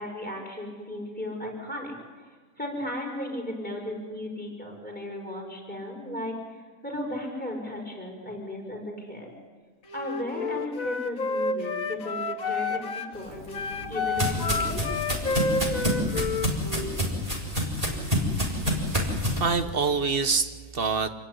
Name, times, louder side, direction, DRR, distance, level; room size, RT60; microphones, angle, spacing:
voice 1, 0.0-2.0 2.6-6.3 6.8-9.3 9.9-14.9, left 1 dB, 5° left, 0 dB, 5.7 m, -35 dB
Wind instrument woodwind instrument, 9.9-13.1 13.5-16.9, left 4 dB, 75° left, 1.9 m, -30 dB
sound 1, 13.3-19.4, equal, 25° right, 4.4 m, -28 dB
voice 2, 18.5-21.1, right 5 dB, 45° right, 9 dB, 1.3 m, -27 dB
27.0 x 17.5 x 10.0 m, 1.5 s
omnidirectional pair, 1.4 m